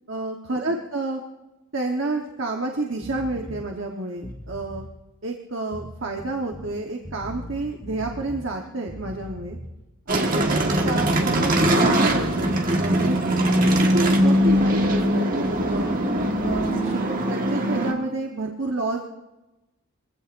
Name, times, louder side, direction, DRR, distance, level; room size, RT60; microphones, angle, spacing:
voice 1, 0.1-1.2 1.7-4.8 5.2-9.6 10.1-13.2 13.9-15.9 16.4-17.0 17.3-19.0, right 2 dB, 55° right, 1 dB, 1.3 m, -29 dB
sound 1, 3.0-3.7 4.2-4.9 5.7-6.7 7.0-8.5 8.9-9.8 10.5-12.6, left 1 dB, 15° left, 1.5 m, -39 dB
sound 2, 10.1-17.9, right 1 dB, 40° right, 1.6 m, -21 dB
23.5 x 16.0 x 2.7 m, 1.0 s
head